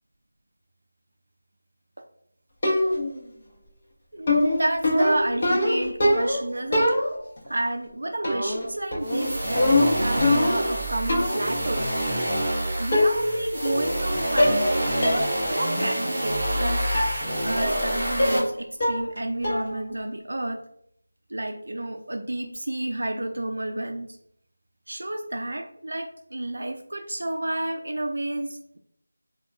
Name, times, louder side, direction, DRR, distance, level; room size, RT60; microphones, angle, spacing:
sound 1, 2.6-3.2 4.3-6.4 6.7-7.4 8.2-8.7 8.9-10.7 11.1-11.5 12.4-12.5 12.9-13.4 13.7-14.1 14.4-14.7 15.0-15.3 15.7-15.8 16.9-17.2 17.6-17.9 18.2-18.5 18.8-19.2 19.4-19.8, left 1 dB, 30° left, 0.8 m, -23 dB
voice 1, 4.1-7.0 7.5-11.9 12.8-14.9 15.5-16.9 17.4-20.6 21.3-24.2 24.9-28.8, right 1 dB, 70° right, 5 dB, 0.3 m, -30 dB
sound 2, 9.0-18.4, right 1 dB, 15° right, 1.0 m, -27 dB
2.9 x 2.2 x 3.4 m, 0.68 s
figure-of-eight pair, 175°, 0 cm